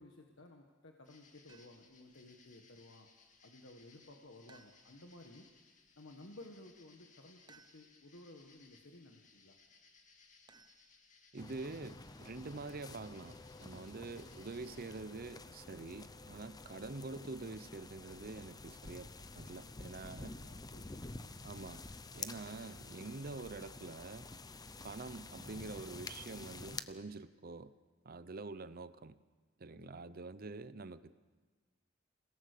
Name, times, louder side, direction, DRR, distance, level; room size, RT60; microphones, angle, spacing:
voice 1, 0.0-3.1 3.4-5.5 6.0-9.5 13.7-14.0 19.9-21.1 29.7-30.2, left 2 dB, 70° left, 2 dB, 1.5 m, -56 dB
sound 1, 1.0-15.0, left 5 dB, 40° left, 2.0 m, -65 dB
sound 2, 1.5-2.0 4.5-5.2 7.5-8.2 10.5-11.4, right 4 dB, 20° right, 0.9 m, -64 dB
voice 2, 11.3-20.4 21.4-21.9 22.1-24.3 24.8-27.7 28.0-29.2 29.6-31.1, right 3 dB, 50° right, 15 dB, 0.7 m, -46 dB
sound 3, 11.4-26.8, left 3 dB, 20° left, 0.7 m, -49 dB
28.0 x 17.5 x 6.7 m, 1.4 s
head